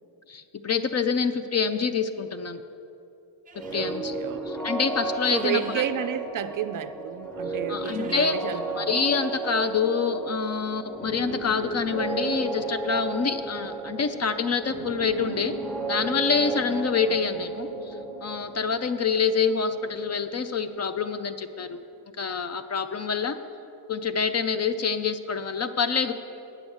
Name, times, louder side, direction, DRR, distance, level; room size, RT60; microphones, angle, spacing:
voice 1, 0.3-2.6 3.7-4.1 4.5-5.6 7.7-8.4 8.8-15.5 15.9-17.9 18.2-21.8 22.2-23.4 23.9-26.1, left 5 dB, 35° left, 10 dB, 0.4 m, -26 dB
sound 1, 3.5-21.2, right 3 dB, 5° left, 1.2 m, -34 dB
sound 2, 3.5-3.9 5.1-5.9 7.7-8.4, right 4 dB, 15° right, 0.8 m, -48 dB
voice 2, 3.7-4.5 5.3-9.0 17.1-17.5, right 10 dB, 45° right, 10 dB, 0.4 m, -32 dB
9.1 x 7.7 x 7.1 m, 2.7 s
cardioid pair, 110°, 48 cm